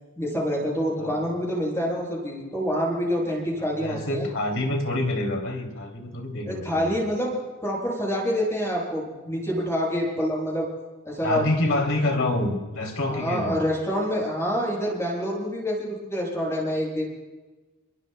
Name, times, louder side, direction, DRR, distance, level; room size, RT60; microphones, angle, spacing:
voice 1, 0.2-4.3 6.5-7.4 7.6-10.7 11.1-11.8 13.1-17.1, equal, 15° left, -3 dB, 7.2 m, -27 dB
voice 2, 3.8-6.9 11.2-13.6, left 1 dB, 65° left, 2 dB, 3.0 m, -27 dB
28.0 x 22.0 x 2.3 m, 1.2 s
head